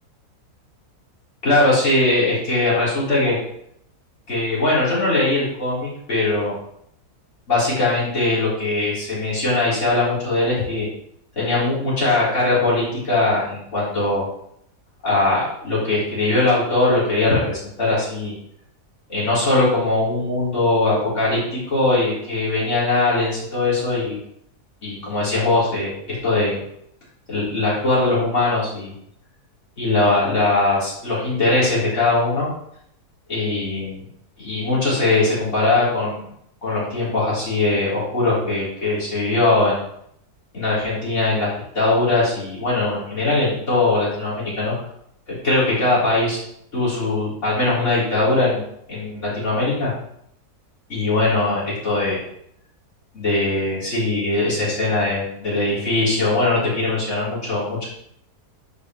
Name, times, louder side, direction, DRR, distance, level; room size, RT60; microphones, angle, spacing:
voice 1, 1.4-3.4 4.3-6.5 7.5-10.9 11.4-14.3 15.0-18.3 19.1-24.2 24.8-26.6 27.3-28.9 29.8-32.5 33.3-34.1 34.4-36.2 36.6-39.8 40.5-44.7 45.3-46.4 46.7-48.6 48.9-49.9 50.9-52.2 53.1-57.9, left 2 dB, 45° left, -9 dB, 4.0 m, -21 dB
11.0 x 5.1 x 3.1 m, 0.73 s
omnidirectional pair, 1.7 m